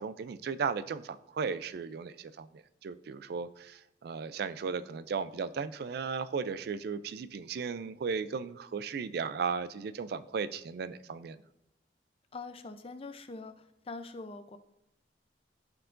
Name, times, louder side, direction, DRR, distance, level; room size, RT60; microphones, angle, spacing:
voice 1, 0.0-11.4, right 5 dB, 60° right, 14 dB, 0.3 m, -36 dB
voice 2, 12.3-14.6, left 3 dB, 30° left, 9 dB, 0.5 m, -43 dB
13.5 x 4.6 x 2.5 m, 0.86 s
head